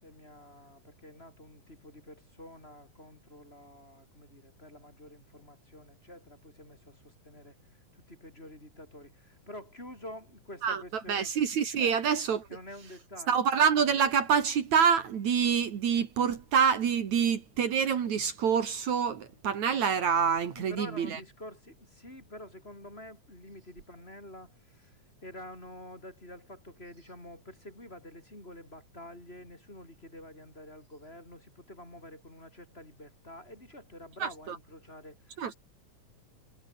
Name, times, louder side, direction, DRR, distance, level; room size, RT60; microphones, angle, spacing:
voice 1, 0.0-7.5 7.9-11.3 11.8-11.9 12.5-13.4 20.5-35.6, left 1 dB, 15° left, 6.5 m, -48 dB
voice 2, 10.6-12.5 13.3-21.2 34.2-34.6 35.4-35.5, right 7 dB, 65° right, 3.3 m, -26 dB
omnidirectional pair, 3.6 m